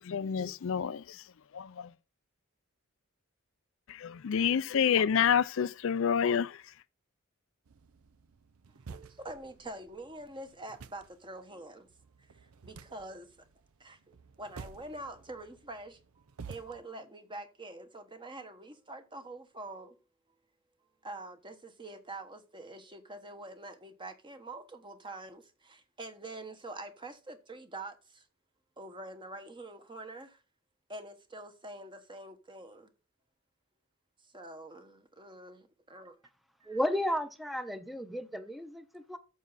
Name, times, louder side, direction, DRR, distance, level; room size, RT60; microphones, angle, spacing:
voice 1, 0.0-1.3 1.5-1.9 3.9-6.7, left 7 dB, 65° left, 0.4 m, -29 dB
sound 1, 7.7-16.8, right 5 dB, 85° right, 0.6 m, -52 dB
voice 2, 8.9-11.9 12.2-13.3 13.8-20.0 21.0-28.3 28.8-30.4 30.9-32.9 34.3-36.2 36.6-36.8, right 2 dB, 25° right, 1.2 m, -46 dB
voice 3, 36.7-39.2, equal, ahead, 0.8 m, -33 dB
12.0 x 7.1 x 4.0 m
head